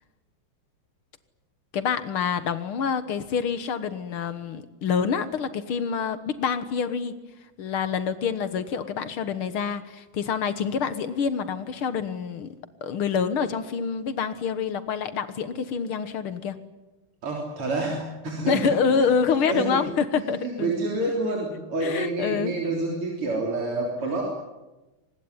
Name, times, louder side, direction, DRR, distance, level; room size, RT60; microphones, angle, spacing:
voice 1, 1.7-7.2 7.6-12.6 12.8-16.6 18.5-20.7 21.8-22.6, left 6 dB, 75° left, 12 dB, 2.1 m, -27 dB
voice 2, 17.2-19.9 20.1-24.2, right 2 dB, 85° right, -1 dB, 4.5 m, -29 dB
24.5 x 20.0 x 9.8 m, 1.1 s
omnidirectional pair, 2.4 m